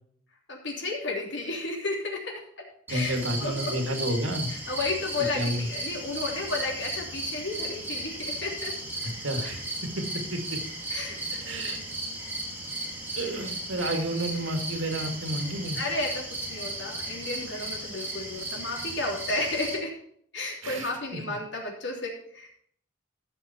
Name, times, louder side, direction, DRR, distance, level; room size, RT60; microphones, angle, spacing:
voice 1, 0.5-3.9 4.5-8.8 10.9-11.8 15.7-20.0 20.3-22.5, left 2 dB, 70° left, 0 dB, 3.2 m, -33 dB
sound 1, 2.9-19.8, right 1 dB, 10° right, 2.7 m, -35 dB
voice 2, 2.9-4.5 5.3-5.7 9.2-9.6 10.0-10.4 11.3-11.8 13.2-15.8 20.6-21.2, right 1 dB, 85° right, 4 dB, 2.3 m, -30 dB
15.5 x 6.1 x 4.4 m, 0.64 s
head